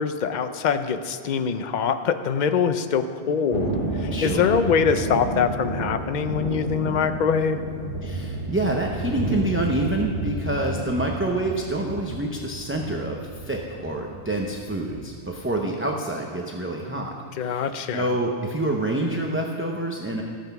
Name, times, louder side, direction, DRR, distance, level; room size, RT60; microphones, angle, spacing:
voice 1, 0.0-7.6 17.4-18.2, left 6 dB, 50° left, 9 dB, 0.7 m, -24 dB
Thunder, 3.5-15.0, right 2 dB, 50° right, 1.8 m, -31 dB
voice 2, 4.1-4.5 8.0-17.7 17.9-20.2, right 1 dB, 15° right, 0 dB, 0.7 m, -27 dB
14.0 x 7.9 x 5.9 m, 2.2 s
omnidirectional pair, 1.1 m